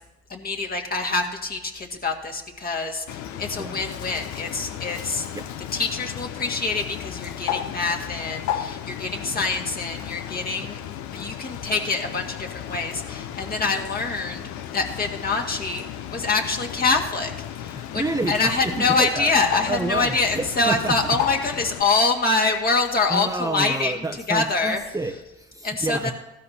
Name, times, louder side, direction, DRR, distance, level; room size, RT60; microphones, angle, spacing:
voice 1, 0.3-5.3 5.7-10.8 11.1-15.8 16.1-24.0 24.3-24.8 25.6-26.1, left 3 dB, 30° left, 1 dB, 2.0 m, -25 dB
Bird, 3.1-21.8, left 10 dB, 65° left, 0.8 m, -34 dB
voice 2, 17.7-19.3 19.7-21.2 23.1-26.1, right 2 dB, 10° right, 5 dB, 0.8 m, -29 dB
16.0 x 12.5 x 2.9 m, 1.0 s
supercardioid pair, 75°, 30 cm